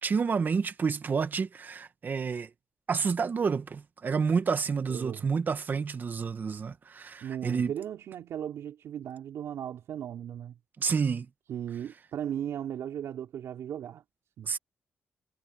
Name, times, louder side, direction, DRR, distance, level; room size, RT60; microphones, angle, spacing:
voice 1, 0.0-2.5 2.9-7.7 10.8-11.3 14.4-14.6, right 5 dB, 40° right, 1.6 m, -29 dB
voice 2, 4.9-5.3 7.2-10.5 11.5-14.0 14.4-14.5, right 10 dB, 75° right, 4.0 m, -37 dB
cardioid pair, 105°, 5 cm